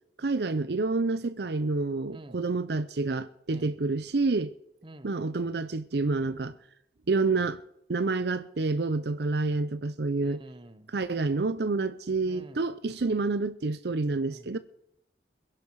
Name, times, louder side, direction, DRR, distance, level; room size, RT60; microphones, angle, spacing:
voice 1, 0.2-4.5 5.0-6.5 7.1-7.6 7.9-10.4 10.9-14.6, right 3 dB, 65° right, 0.6 m, -28 dB
voice 2, 2.1-2.4 3.5-3.7 4.8-5.1 10.2-10.9 12.3-12.6 14.3-14.6, right 1 dB, 30° right, 1.0 m, -48 dB
22.0 x 11.0 x 4.7 m
head